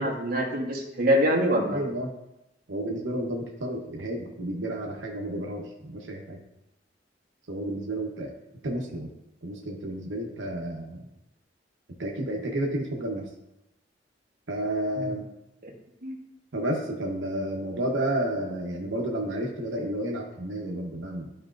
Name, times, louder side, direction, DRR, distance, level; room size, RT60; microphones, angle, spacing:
voice 1, 0.0-1.8 15.0-15.1 15.6-15.7 16.0-16.2, equal, 55° right, -1 dB, 1.4 m, -25 dB
voice 2, 1.7-2.1 2.7-6.4 7.5-8.3 8.6-9.1 9.4-11.0 12.0-13.3 14.5-15.2 16.5-21.3, right 1 dB, 85° right, -1 dB, 1.0 m, -31 dB
12.5 x 4.3 x 2.6 m, 0.91 s
head